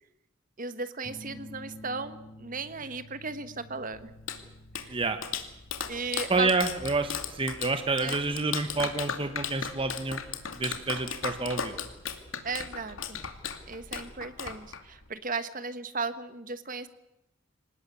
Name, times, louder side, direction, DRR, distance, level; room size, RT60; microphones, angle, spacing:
voice 1, 0.6-4.1 4.8-5.0 5.9-6.5 8.0-8.2 12.4-13.2 13.7-16.9, right 4 dB, 40° right, 11 dB, 1.5 m, -36 dB
sound 1, 1.0-12.2, left 1 dB, 15° left, 1.9 m, -52 dB
Clapping, 3.9-15.1, left 7 dB, 85° left, 2.6 m, -37 dB
voice 2, 4.9-5.2 6.3-10.2 10.5-11.7, right 3 dB, 25° right, 8 dB, 1.2 m, -28 dB
26.5 x 19.0 x 8.4 m, 0.88 s
head